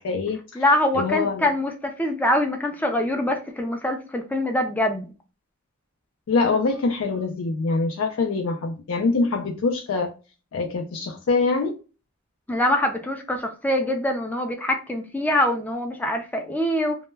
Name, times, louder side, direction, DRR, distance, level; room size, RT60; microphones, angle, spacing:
voice 1, 0.0-0.6 0.9-1.5 6.3-10.1 10.5-11.8, left 4 dB, 75° left, 0.4 m, -24 dB
voice 2, 0.6-5.1 12.5-17.0, left 1 dB, 10° left, 0.3 m, -24 dB
2.1 x 2.1 x 3.2 m
head